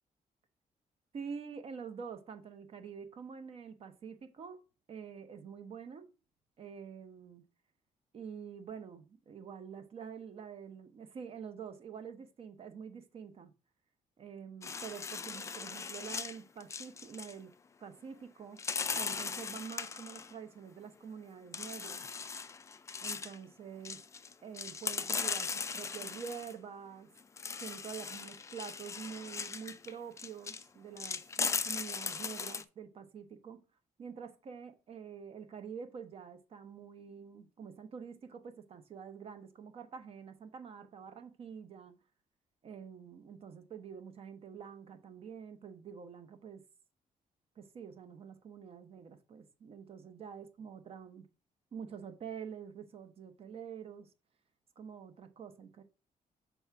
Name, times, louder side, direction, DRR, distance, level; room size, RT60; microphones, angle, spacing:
voice 1, 1.1-4.6 4.9-6.1 6.6-7.4 8.1-13.5 14.2-17.5 17.8-18.6 18.9-22.0 23.0-24.0 24.4-27.1 27.6-33.6 34.0-42.0 42.6-46.6 47.6-51.3 51.7-54.1 54.8-55.8, right 7 dB, 45° right, 0.8 m, -47 dB
sound 1, 14.6-17.3 18.6-20.3 21.5-23.4 23.9-26.5 27.2-30.6 31.0-32.6, left 5 dB, 20° left, 0.3 m, -38 dB
6.1 x 3.4 x 5.9 m
wide cardioid pair, 175°, 14 cm